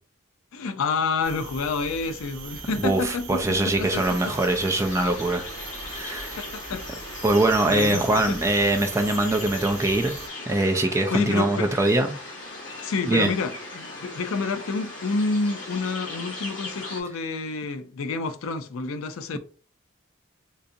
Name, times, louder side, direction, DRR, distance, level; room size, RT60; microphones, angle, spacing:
voice 1, 0.5-4.3 6.4-6.8 7.6-8.4 11.1-11.7 12.8-19.4, left 4 dB, 75° left, 0.4 m, -29 dB
sound 1, 1.2-10.3, right 5 dB, 70° right, 0.8 m, -40 dB
voice 2, 2.7-5.4 5.9-6.4 7.2-10.2 10.5-12.2 13.1-13.3 19.3-19.4, right 2 dB, 15° right, 0.3 m, -23 dB
sound 2, 3.8-17.0, left 2 dB, 60° left, 1.1 m, -38 dB
3.9 x 2.5 x 2.6 m
head